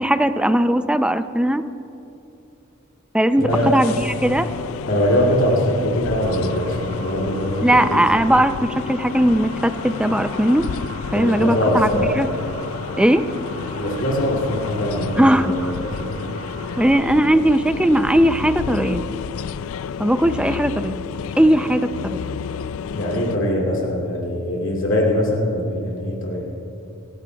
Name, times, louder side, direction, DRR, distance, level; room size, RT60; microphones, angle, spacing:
voice 1, 0.0-1.6 3.1-4.5 7.6-8.5 8.9-10.6 11.1-12.3 13.0-13.2 15.2-15.5 16.8-19.1 20.0-21.0 21.4-22.2, right 1 dB, 5° right, 10 dB, 0.4 m, -18 dB
voice 2, 3.4-3.7 4.9-8.0 11.1-12.2 13.7-16.3 22.9-26.5, equal, 65° left, -2 dB, 2.7 m, -22 dB
sound 1, 3.5-23.4, left 7 dB, 80° left, 0.4 m, -31 dB
sound 2, 6.2-17.0, right 3 dB, 85° right, 1.5 m, -40 dB
27.0 x 14.5 x 2.3 m, 2.8 s
head